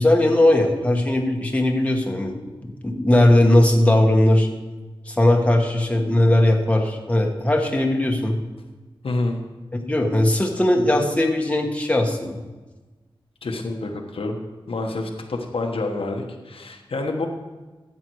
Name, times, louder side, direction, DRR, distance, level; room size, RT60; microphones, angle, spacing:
voice 1, 0.0-2.4 2.6-4.5 5.1-8.4 9.8-12.4, left 1 dB, 15° left, 1 dB, 1.4 m, -19 dB
voice 2, 9.0-9.4 13.4-14.4 14.7-17.3, left 2 dB, 80° left, 3 dB, 1.2 m, -27 dB
13.5 x 7.6 x 4.7 m, 1.2 s
wide cardioid pair, 80°, 9 cm